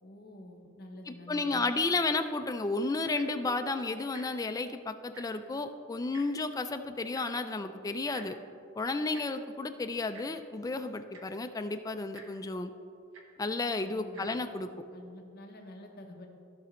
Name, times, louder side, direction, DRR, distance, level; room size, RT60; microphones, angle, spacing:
voice 1, 0.0-1.7 13.9-14.3 14.9-16.3, left 1 dB, 45° left, 2 dB, 0.9 m, -48 dB
voice 2, 1.3-8.4 8.8-12.7 13.4-14.7, left 3 dB, 15° left, 8 dB, 0.3 m, -32 dB
Tick-tock, 3.0-3.4 4.1-4.3 4.6-4.7 5.0-5.5 6.1-6.3 7.1-7.3 8.1-8.3 9.1-9.2 10.1-10.3 10.8-10.9 11.1-11.4 12.1-12.3 13.1-13.3 14.0-14.2 15.0-15.1, right 2 dB, 65° right, 1.2 m, -49 dB
15.0 x 5.9 x 3.1 m, 2.6 s
head